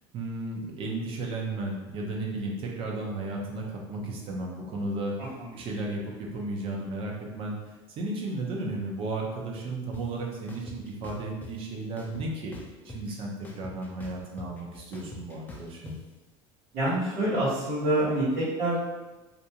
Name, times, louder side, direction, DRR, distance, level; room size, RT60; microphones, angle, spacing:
voice 1, 0.1-5.1 5.5-7.6 8.0-12.5 12.8-15.9, right 2 dB, 45° right, -1 dB, 0.6 m, -34 dB
sound 1, 9.9-10.0 10.5-11.5 12.0-13.1 13.4-16.0, left 2 dB, 15° left, 0.4 m, -43 dB
voice 2, 16.7-18.8, right 1 dB, 80° right, -13 dB, 1.1 m, -26 dB
2.5 x 2.3 x 2.8 m, 1.2 s
supercardioid pair, 125°, 13 cm